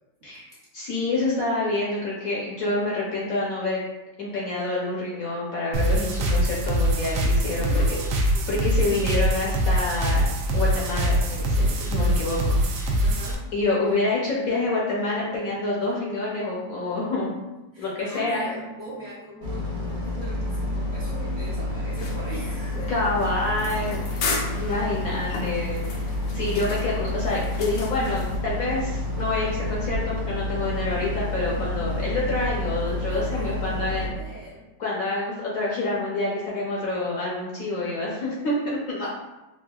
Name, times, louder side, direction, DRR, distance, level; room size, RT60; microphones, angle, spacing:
voice 1, 0.7-3.8 4.2-8.0 8.5-10.3 10.5-13.0 13.5-17.3 17.8-18.5 22.9-24.2 24.6-26.0 26.3-34.1 34.8-39.1, left 2 dB, 60° left, -5 dB, 1.0 m, -27 dB
sound 1, 5.7-13.3, equal, 90° right, 1.3 m, -23 dB
voice 2, 7.6-8.1 8.3-8.5 13.0-13.4 17.7-22.9 24.2-24.5 33.1-34.7, right 1 dB, 55° right, -8 dB, 1.0 m, -40 dB
Boat Water vehicle, 19.4-34.1, left 2 dB, 75° right, 1.5 m, -29 dB
sound 2, 22.0-28.4, left 4 dB, 75° left, 1.2 m, -35 dB
4.5 x 2.4 x 2.3 m, 1.0 s
omnidirectional pair, 2.0 m